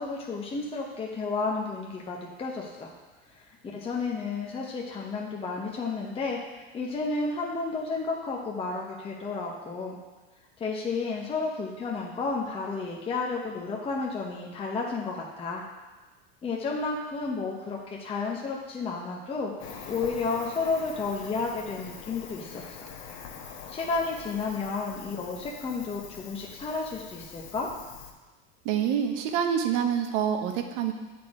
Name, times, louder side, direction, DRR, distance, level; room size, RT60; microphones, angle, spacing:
voice 1, 0.0-2.9 3.3-3.4 3.7-6.4 6.7-10.0 10.6-15.6 16.4-19.5 19.9-22.6 23.7-27.7, left 4 dB, 20° left, -2 dB, 0.8 m, -32 dB
Cricket, 19.6-28.1, left 6 dB, 55° left, 1.1 m, -44 dB
voice 2, 28.6-30.9, right 8 dB, 65° right, 5 dB, 1.0 m, -26 dB
8.3 x 4.3 x 4.8 m, 1.2 s
supercardioid pair, 130°, 31 cm